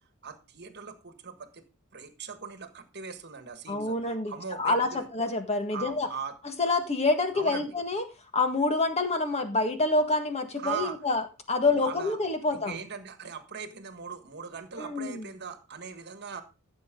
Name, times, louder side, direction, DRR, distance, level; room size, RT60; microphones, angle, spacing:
voice 1, 0.2-1.6 1.9-5.1 5.7-6.4 7.3-7.8 10.6-11.0 11.8-12.2 12.5-16.4, right 6 dB, 50° right, 9 dB, 1.5 m, -40 dB
voice 2, 3.7-4.3 4.6-6.1 6.6-8.0 8.3-12.8 14.8-15.3, left 3 dB, 30° left, 6 dB, 1.6 m, -27 dB
15.0 x 7.1 x 3.8 m, 0.31 s
head